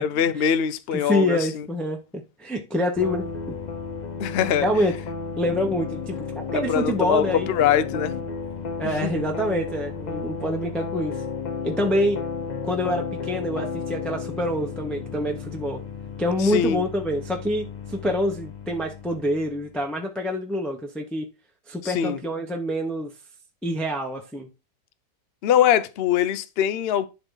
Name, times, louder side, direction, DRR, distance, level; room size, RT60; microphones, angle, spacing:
voice 1, 0.0-1.6 4.2-4.7 6.5-8.2 8.8-9.2 16.4-16.8 21.8-22.2 25.4-27.1, left 9 dB, 70° left, 0.5 m, -23 dB
voice 2, 0.9-3.3 4.6-4.9 5.4-6.2 6.5-7.6 8.8-11.2 11.6-12.2 12.6-15.8 16.2-21.3 21.7-23.1 23.6-24.5, equal, ahead, 0.8 m, -26 dB
sound 1, 3.0-19.7, left 5 dB, 35° left, 0.8 m, -33 dB
11.0 x 4.0 x 3.9 m
omnidirectional pair, 1.8 m